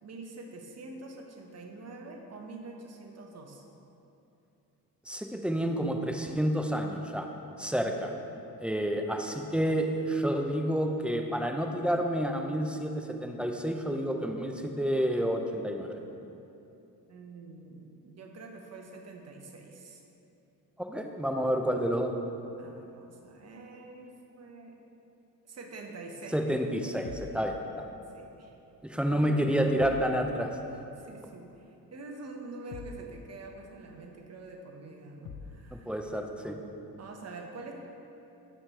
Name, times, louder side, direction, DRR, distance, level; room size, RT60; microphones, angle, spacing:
voice 1, 0.0-3.6 17.1-20.0 22.6-24.8 25.5-26.4 28.1-28.5 29.1-29.5 31.0-35.9 37.0-37.7, right 3 dB, 40° right, 2 dB, 0.8 m, -46 dB
voice 2, 5.1-7.3 7.6-8.1 8.6-16.0 20.8-22.1 26.3-27.9 28.8-30.6 35.9-36.6, equal, 5° right, 3 dB, 0.3 m, -29 dB
sound 1, 27.0-27.4 29.8-30.1 32.7-33.1 35.2-35.6, left 6 dB, 60° left, 0.6 m, -43 dB
5.8 x 3.3 x 5.5 m, 2.8 s
cardioid pair, 80°, 40 cm